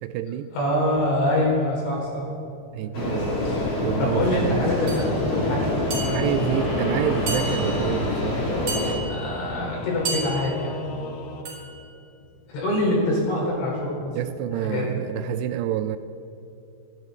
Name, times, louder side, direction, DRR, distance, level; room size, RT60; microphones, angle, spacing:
voice 1, 0.0-0.5 2.7-4.7 6.1-8.4 14.1-16.0, right 11 dB, 80° right, 10 dB, 2.6 m, -28 dB
voice 2, 0.5-2.3 4.0-6.4 9.0-10.7 12.5-14.1 14.6-14.8, left 1 dB, 85° left, -3 dB, 6.6 m, -25 dB
sound 1, 2.9-9.0, left 2 dB, 35° left, 3.6 m, -26 dB
sound 2, 4.9-5.1 5.9-6.5 7.3-7.9 8.7-9.3 10.0-10.7 11.4-11.8, right 3 dB, 35° right, 4.4 m, -32 dB
Singing / Musical instrument, 6.4-11.4, left 4 dB, 65° left, 2.4 m, -37 dB
27.0 x 11.5 x 4.1 m, 2.8 s
omnidirectional pair, 5.2 m